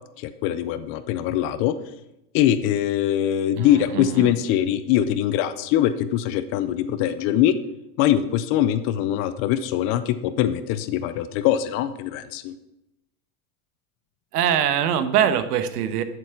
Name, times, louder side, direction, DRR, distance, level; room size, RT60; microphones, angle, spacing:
voice 1, 0.2-1.7 2.3-7.5 8.0-12.5, left 11 dB, 30° left, 12 dB, 0.4 m, -22 dB
voice 2, 3.6-4.3 14.3-16.0, right 9 dB, 85° right, 12 dB, 1.3 m, -23 dB
11.0 x 7.6 x 5.7 m, 0.89 s
supercardioid pair, 145°, 45 cm